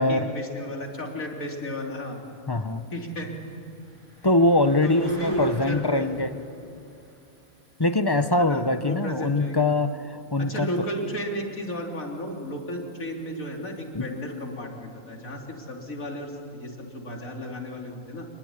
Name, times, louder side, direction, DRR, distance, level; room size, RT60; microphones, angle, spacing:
voice 1, 0.0-2.2 2.9-3.3 4.8-6.1 8.4-9.7 10.4-18.3, equal, 70° left, 0 dB, 3.8 m, -33 dB
sound 1, 0.8-14.5, equal, 55° right, 7.4 m, -53 dB
voice 2, 2.5-2.8 4.2-6.4 7.8-10.7 13.9-14.1, left 2 dB, 20° left, 10 dB, 0.7 m, -23 dB
27.5 x 21.5 x 9.7 m, 2.5 s
omnidirectional pair, 1.5 m